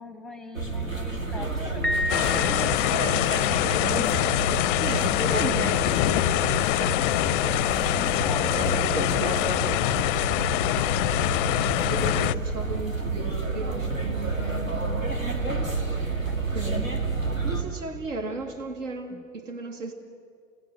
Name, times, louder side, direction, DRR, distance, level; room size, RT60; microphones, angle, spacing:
voice 1, 0.0-4.0 7.6-10.2 16.3-16.4 19.1-19.2, left 2 dB, ahead, 8 dB, 1.1 m, -42 dB
sound 1, 0.5-17.6, right 3 dB, 90° right, 2.6 m, -30 dB
Piano, 1.8-3.3, left 1 dB, 25° right, 2.6 m, -30 dB
sound 2, 2.1-12.4, left 16 dB, 45° left, 0.5 m, -24 dB
voice 2, 4.8-6.0 11.9-15.1 16.5-16.9 17.4-19.9, right 3 dB, 70° right, 5 dB, 2.3 m, -35 dB
28.5 x 19.0 x 7.8 m, 2.3 s
figure-of-eight pair, 85°, 39 cm